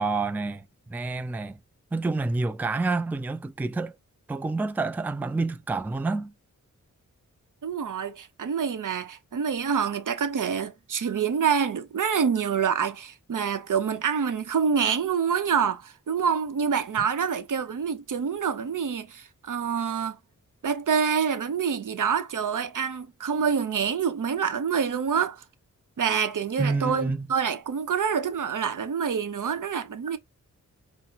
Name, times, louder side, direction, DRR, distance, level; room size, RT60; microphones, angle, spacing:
voice 1, 0.0-1.6 1.9-4.0 4.3-6.3 17.0-17.1 26.6-27.3, right 3 dB, 5° right, 0.3 m, -28 dB
voice 2, 7.6-20.2 20.6-25.4 26.0-30.2, right 7 dB, 75° right, 0.8 m, -26 dB
5.6 x 2.1 x 3.9 m
wide cardioid pair, 100°, 31 cm